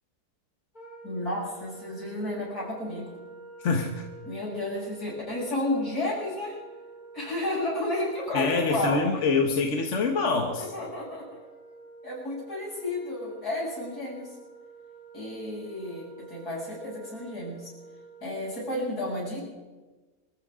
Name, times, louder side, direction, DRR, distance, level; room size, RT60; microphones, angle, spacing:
Wind instrument woodwind instrument, 0.7-18.8, right 4 dB, 25° left, 7.3 m, -48 dB
voice 1, 1.0-3.2 4.3-6.6 7.1-9.3 10.6-11.4 12.0-14.3 15.1-17.7 18.2-19.5, left 1 dB, 70° left, -5 dB, 7.6 m, -32 dB
voice 2, 3.6-4.1 8.3-10.7, left 4 dB, 50° left, 3 dB, 1.5 m, -25 dB
25.5 x 14.5 x 3.7 m, 1.3 s
omnidirectional pair, 1.7 m